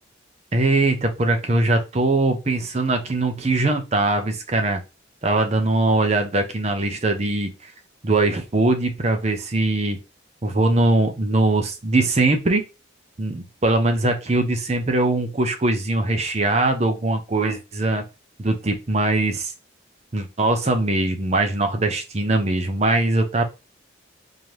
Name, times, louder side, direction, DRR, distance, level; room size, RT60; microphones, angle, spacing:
voice 1, 0.5-4.8 5.2-7.7 8.0-10.0 10.4-12.6 13.2-18.0 18.4-19.5 20.1-23.4, right 2 dB, 35° right, 5 dB, 0.6 m, -21 dB
3.9 x 2.9 x 3.2 m, 0.27 s
head